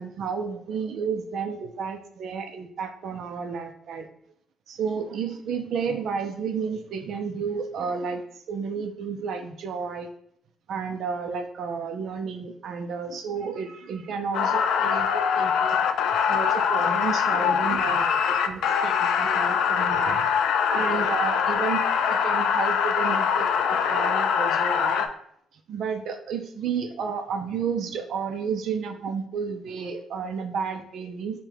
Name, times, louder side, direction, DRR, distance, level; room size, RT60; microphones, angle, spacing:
voice 1, 0.0-4.1 4.7-10.1 10.7-15.8 16.3-20.3 20.7-25.1 25.7-31.4, right 6 dB, 70° right, 6 dB, 0.4 m, -31 dB
sound 1, 14.3-25.1, left 7 dB, 80° left, 0.3 m, -23 dB
5.6 x 2.2 x 3.4 m, 0.70 s
cardioid pair, 90°, 0 cm